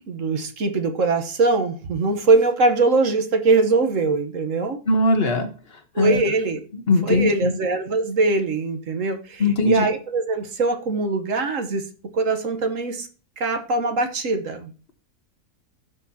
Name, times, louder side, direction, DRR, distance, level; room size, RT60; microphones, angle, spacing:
voice 1, 0.1-4.8 5.9-6.6 7.0-11.8 12.1-13.1 13.4-14.7, right 3 dB, 60° right, 7 dB, 1.4 m, -22 dB
voice 2, 4.9-5.5 6.0-6.2 6.9-7.5 9.4-9.8, left 2 dB, 45° left, 7 dB, 1.2 m, -19 dB
15.5 x 6.2 x 2.8 m, 0.38 s
omnidirectional pair, 1.5 m